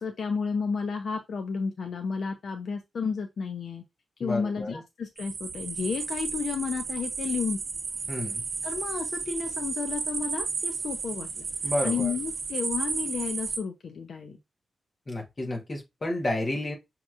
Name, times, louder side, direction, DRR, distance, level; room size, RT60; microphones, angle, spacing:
voice 1, 0.0-3.8 4.2-7.6 8.6-14.4, left 5 dB, 55° left, 0.5 m, -32 dB
voice 2, 4.2-4.8 8.1-8.4 11.6-12.1 15.1-16.7, left 1 dB, 25° left, 1.0 m, -31 dB
sound 1, 5.2-13.6, right 5 dB, 60° right, 0.8 m, -33 dB
6.2 x 2.9 x 2.4 m
wide cardioid pair, 175°, 0 cm